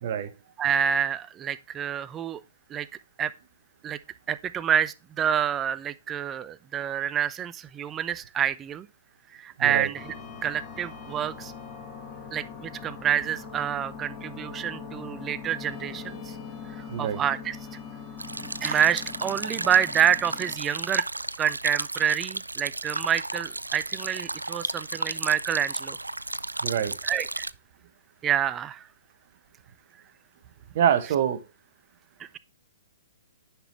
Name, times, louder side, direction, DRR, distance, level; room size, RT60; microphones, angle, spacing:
voice 1, 0.0-0.3 9.6-9.9 16.9-17.2 26.6-26.9 30.7-31.4, right 9 dB, 50° right, 1.2 m, -25 dB
voice 2, 0.6-2.4 2.7-2.9 3.2-3.3 3.8-4.0 4.3-8.9 9.3-10.1 10.4-11.5 12.3-16.4 16.7-17.6 18.4-21.0 21.4-26.0 27.0-27.5 28.2-28.9 32.2-32.4, right 9 dB, 20° right, 0.6 m, -27 dB
sound 1, 9.9-20.6, left 6 dB, 25° left, 2.0 m, -41 dB
sound 2, 18.2-27.5, right 2 dB, 85° right, 0.4 m, -33 dB
9.9 x 6.1 x 3.1 m
figure-of-eight pair, 120°, 0 cm